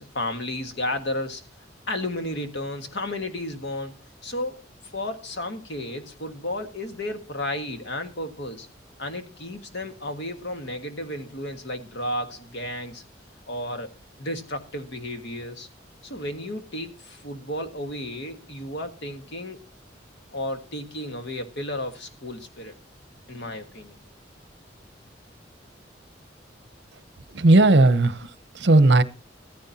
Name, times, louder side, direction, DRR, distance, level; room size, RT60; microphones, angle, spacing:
voice 1, 0.0-1.4 1.9-4.6 4.9-8.7 9.0-13.0 13.5-13.9 14.2-15.7 16.0-19.6 20.3-22.7 23.3-24.0, left 1 dB, 65° left, 1.6 m, -33 dB
voice 2, 27.3-29.0, right 2 dB, 65° right, 0.8 m, -17 dB
14.5 x 14.0 x 2.8 m
head